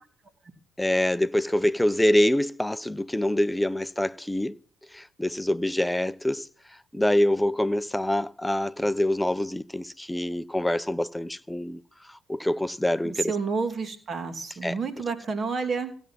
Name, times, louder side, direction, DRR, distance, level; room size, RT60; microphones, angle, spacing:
voice 1, 0.8-4.5 4.9-6.5 6.9-11.8 12.0-13.4 14.6-14.8, left 1 dB, 5° left, 0.7 m, -25 dB
voice 2, 13.0-16.0, right 4 dB, 45° right, 2.9 m, -30 dB
16.0 x 7.2 x 7.6 m
hypercardioid pair, 60°, 0 cm